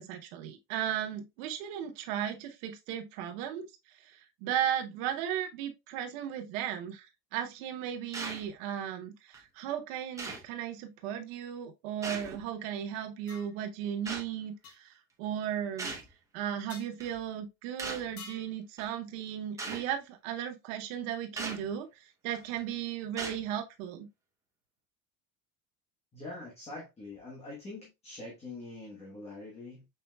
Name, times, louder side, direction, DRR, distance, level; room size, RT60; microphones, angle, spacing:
voice 1, 0.0-7.1 7.3-15.9 16.3-24.1, right 10 dB, 85° right, 0.9 m, -36 dB
sound 1, 8.1-8.5 9.3-9.4 10.2-10.5 12.0-12.5 14.1-14.3 15.8-16.1 17.0-17.2 17.8-18.1 18.8-18.9 19.6-19.9 21.4-21.7 22.3-22.6 23.2-23.5, right 3 dB, 10° right, 0.7 m, -39 dB
sound 2, 13.3-13.5 14.6-14.8 16.7-16.9 18.2-18.5, left 5 dB, 40° left, 0.8 m, -47 dB
voice 2, 26.1-29.9, left 2 dB, 15° left, 1.1 m, -44 dB
5.8 x 3.9 x 2.2 m
cardioid pair, 170°, 37 cm